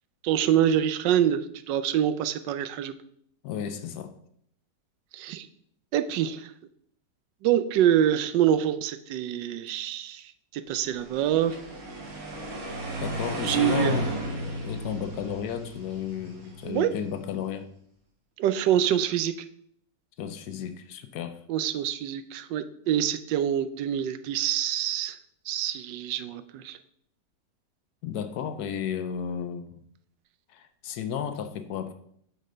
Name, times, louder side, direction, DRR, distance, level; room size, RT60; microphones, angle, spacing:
voice 1, 0.2-2.9 5.1-5.5 5.9-6.5 7.4-10.2 10.5-11.5 13.4-14.0 16.6-16.9 18.4-19.3 21.5-25.2 25.5-26.8, right 10 dB, 85° right, 12 dB, 1.3 m, -25 dB
voice 2, 3.4-4.1 13.0-14.1 14.6-17.7 20.2-21.4 28.0-29.8 30.5-31.9, left 8 dB, 70° left, 9 dB, 1.2 m, -33 dB
sound 1, 11.0-17.1, right 1 dB, 55° right, 1.9 m, -34 dB
7.5 x 4.0 x 5.1 m, 0.66 s
omnidirectional pair, 1.9 m